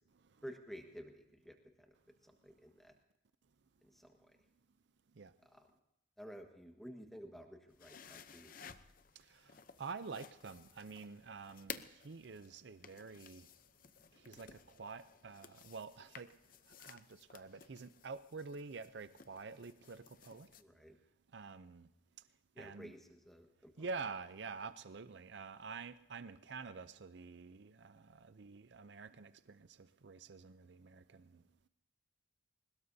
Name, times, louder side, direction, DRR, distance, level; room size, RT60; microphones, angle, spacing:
voice 1, 0.4-1.9 2.2-2.9 3.8-4.4 5.4-5.7 6.2-8.5 20.6-21.0 22.5-23.9, equal, ahead, 1.5 m, -53 dB
sound 1, 7.7-20.6, left 7 dB, 45° left, 0.7 m, -55 dB
voice 2, 9.2-9.5 9.8-13.5 14.2-16.3 16.8-20.5 21.3-21.9 22.6-22.9 23.8-31.4, right 4 dB, 60° right, 0.5 m, -48 dB
22.0 x 20.0 x 2.7 m
head